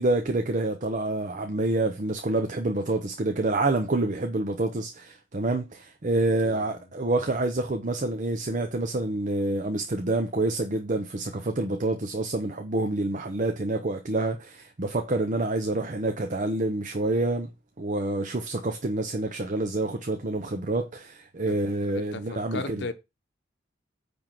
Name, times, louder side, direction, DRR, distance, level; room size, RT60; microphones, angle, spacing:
voice 1, 0.0-17.5 17.8-22.8, right 2 dB, 45° right, 0.7 m, -27 dB
voice 2, 6.4-6.9 21.5-21.6 21.9-22.9, left 3 dB, 65° left, 1.0 m, -37 dB
8.9 x 3.5 x 6.0 m
head